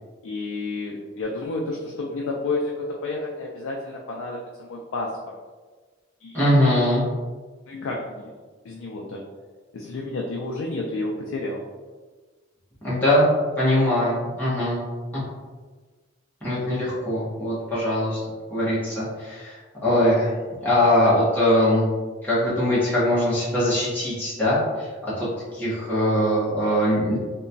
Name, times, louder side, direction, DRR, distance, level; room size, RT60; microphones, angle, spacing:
voice 1, 0.2-5.1 6.2-6.5 7.7-8.3 8.6-9.2 9.7-11.6, left 2 dB, 80° left, -2 dB, 0.3 m, -30 dB
voice 2, 6.3-7.0 12.8-13.3 13.6-14.8 16.4-18.2 18.5-19.5 19.8-20.3 20.6-21.8 22.2-25.3 25.5-27.2, left 1 dB, 10° left, -11 dB, 0.8 m, -21 dB
2.9 x 2.2 x 2.5 m, 1.4 s
head